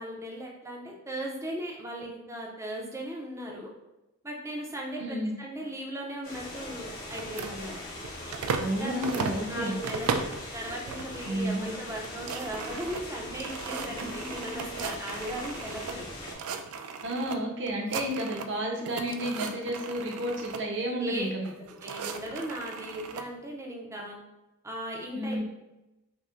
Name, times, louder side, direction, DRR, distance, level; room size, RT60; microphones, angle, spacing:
voice 1, 0.0-3.7 4.2-7.8 8.8-9.1 9.5-10.2 10.5-16.1 21.0-21.3 21.8-24.2 24.6-25.4, right 1 dB, 15° right, -1 dB, 0.5 m, -37 dB
voice 2, 5.0-5.3 8.6-9.8 11.2-11.7 17.0-21.5 25.1-25.4, equal, 55° right, -1 dB, 0.7 m, -31 dB
sound 1, 6.2-16.3, left 1 dB, 75° left, 1.1 m, -41 dB
sound 2, 7.1-8.7 9.0-10.4 10.9-11.3 11.6-11.7 12.0-16.0 16.3-17.4 17.7-18.6 18.9-20.6 21.4-23.2, right 5 dB, 85° right, 0.3 m, -36 dB
5.4 x 2.1 x 2.5 m, 0.96 s
head